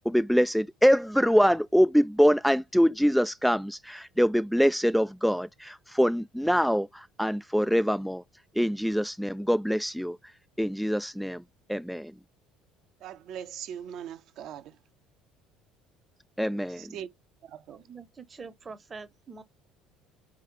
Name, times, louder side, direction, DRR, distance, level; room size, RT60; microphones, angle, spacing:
voice 1, 0.0-8.2 8.6-10.2 10.6-11.4 11.7-12.1 16.4-16.9, equal, ahead, 0.3 m, -24 dB
voice 2, 13.0-14.8 16.7-17.1 17.4-17.8, right 9 dB, 55° right, 0.7 m, -41 dB
voice 3, 17.7-19.4, right 4 dB, 30° right, 0.9 m, -45 dB
4.5 x 3.7 x 2.9 m
figure-of-eight pair, 60°, 0 cm